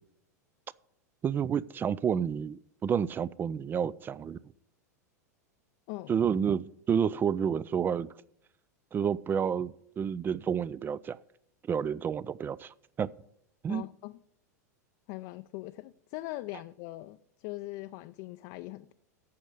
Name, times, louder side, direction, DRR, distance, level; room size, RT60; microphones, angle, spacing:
voice 1, 1.2-4.4 6.1-8.1 8.9-11.2 11.7-13.1 13.6-13.8, right 7 dB, 20° right, 0.3 m, -30 dB
voice 2, 5.9-6.2 13.7-14.2 15.1-18.9, left 18 dB, 50° left, 0.4 m, -41 dB
8.5 x 6.4 x 8.2 m
hypercardioid pair, 95°, 9 cm